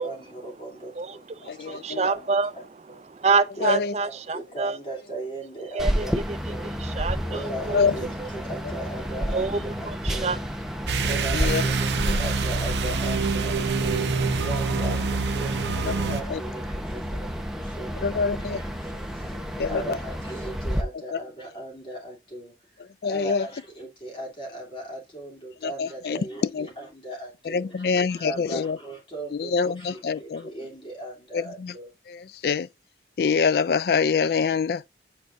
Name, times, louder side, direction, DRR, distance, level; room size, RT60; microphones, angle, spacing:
voice 1, 0.0-2.6 2.9-3.0 3.6-6.1 6.5-6.8 7.3-10.4 11.0-22.5 23.0-31.9, right 1 dB, 30° left, 2.9 m, -38 dB
voice 2, 0.9-4.8 5.7-7.9 8.2-8.3 9.3-10.4, right 4 dB, 35° right, 0.4 m, -28 dB
voice 3, 1.5-2.1 3.6-3.9 7.7-7.9 11.3-11.6 15.8-15.9 16.3-16.4 18.0-18.6 19.6-20.0 21.1-21.2 23.0-23.5 25.6-26.2 26.5-26.7 27.5-28.8 29.3-30.5 31.3-31.7 32.1-32.7 33.2-34.8, left 5 dB, 60° left, 0.3 m, -25 dB
sound 1, 5.8-20.8, equal, 5° right, 0.8 m, -31 dB
sound 2, 10.9-16.2, right 4 dB, 80° right, 0.8 m, -26 dB
8.7 x 4.4 x 2.6 m
head